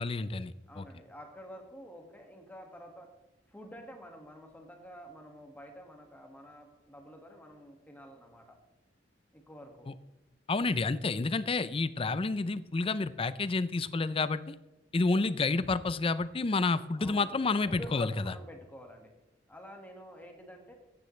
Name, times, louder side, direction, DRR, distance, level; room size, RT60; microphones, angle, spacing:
voice 1, 0.0-0.9 9.9-10.0 10.5-14.5 14.9-18.3, left 3 dB, 30° left, 15 dB, 0.5 m, -30 dB
voice 2, 0.7-3.1 3.5-8.6 9.3-9.9 15.1-15.3 17.0-19.1 19.5-20.7, equal, 10° left, 2 dB, 1.8 m, -49 dB
14.5 x 9.8 x 3.2 m, 0.97 s
head